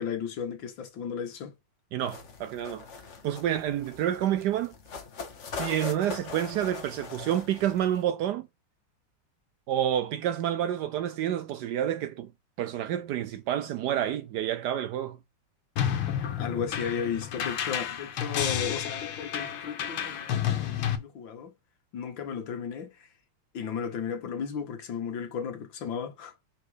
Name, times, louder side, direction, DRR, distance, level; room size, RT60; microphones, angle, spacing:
voice 1, 0.0-1.5 15.9-21.5 21.9-23.1 23.5-26.3, left 7 dB, 70° left, 2.0 m, -35 dB
voice 2, 1.9-2.8 3.2-4.7 5.5-8.5 9.7-12.3 12.6-15.2, right 11 dB, 80° right, 0.9 m, -29 dB
sound 1, 2.0-8.0, left 4 dB, 45° left, 1.2 m, -41 dB
sound 2, 15.8-21.0, left 9 dB, 85° left, 1.9 m, -31 dB
6.0 x 4.3 x 4.9 m
omnidirectional pair, 2.2 m